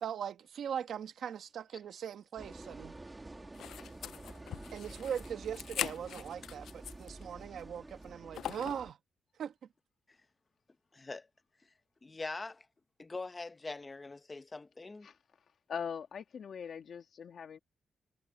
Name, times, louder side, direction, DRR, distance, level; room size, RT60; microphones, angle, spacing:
voice 1, 0.0-2.9 4.7-9.0 9.4-9.5, right 8 dB, 70° right, 1.3 m, -40 dB
sound 1, 2.4-8.9, right 2 dB, 15° right, 2.5 m, -49 dB
sound 2, 3.5-7.2 7.6-7.7 8.3-8.9, left 10 dB, 85° left, 0.3 m, -41 dB
voice 2, 10.9-11.3 12.0-12.7 13.0-15.1, left 3 dB, 20° left, 0.8 m, -43 dB
voice 3, 15.7-17.6, left 7 dB, 55° left, 2.1 m, -42 dB
wide cardioid pair, 155°, 0 cm